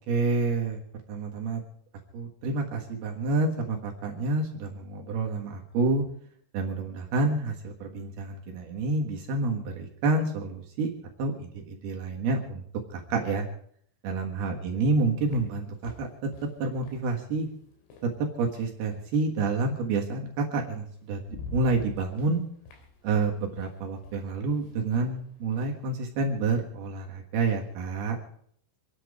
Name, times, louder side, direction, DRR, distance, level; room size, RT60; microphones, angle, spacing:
voice 1, 0.1-0.8 1.1-1.6 2.1-6.0 6.5-10.9 11.2-12.6 12.9-13.5 14.0-16.1 16.6-17.5 18.4-21.2 21.5-22.4 23.0-28.2, right 3 dB, 65° right, 1 dB, 3.1 m, -28 dB
sound 1, 14.6-19.2 20.4-20.5 20.9-26.6, left 3 dB, 80° left, 5.2 m, -48 dB
26.5 x 10.5 x 5.0 m, 0.64 s
omnidirectional pair, 5.6 m